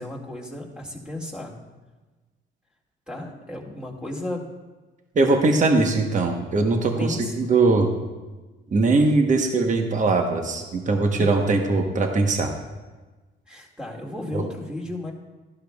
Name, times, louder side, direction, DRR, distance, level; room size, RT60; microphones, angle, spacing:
voice 1, 0.0-1.5 3.1-4.4 7.0-7.3 11.2-11.3 13.5-15.1, left 1 dB, 5° right, -1 dB, 2.1 m, -33 dB
voice 2, 5.1-7.9 8.7-12.5 14.3-14.4, right 3 dB, 40° right, 3 dB, 1.1 m, -21 dB
12.5 x 11.5 x 2.4 m, 1.2 s
cardioid pair, 90°, 20 cm